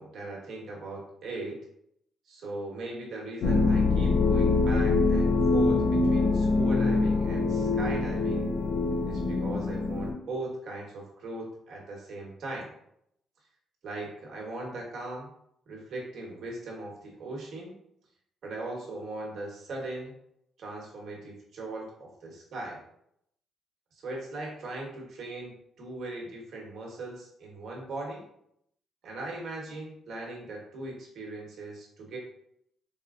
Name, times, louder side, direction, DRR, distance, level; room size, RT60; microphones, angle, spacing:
voice 1, 0.0-1.7 2.3-8.5 9.1-12.7 13.8-15.3 15.7-17.7 18.4-20.2 20.6-22.8 23.9-28.2 29.0-32.2, right 2 dB, 65° right, -1 dB, 1.1 m, -39 dB
sound 1, 3.4-10.1, left 3 dB, 65° left, 0.5 m, -24 dB
4.2 x 2.2 x 2.4 m, 0.73 s
cardioid pair, 90°, 0 cm